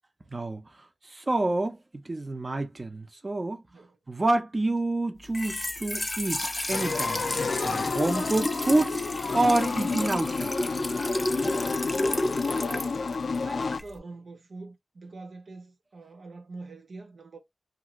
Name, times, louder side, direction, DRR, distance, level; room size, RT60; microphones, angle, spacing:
voice 1, 0.3-3.6 4.1-7.3 7.6-9.0 9.3-10.6, right 2 dB, 45° right, 0.7 m, -28 dB
voice 2, 3.4-4.0 12.4-13.1 13.4-17.4, right 3 dB, 85° right, 0.6 m, -45 dB
Trickle dribble / Fill (with liquid), 5.2-14.0, left 1 dB, 30° left, 0.5 m, -32 dB
sound 1, 6.7-13.8, left 4 dB, 90° left, 0.3 m, -30 dB
2.9 x 2.5 x 2.9 m
wide cardioid pair, 60°, 0 cm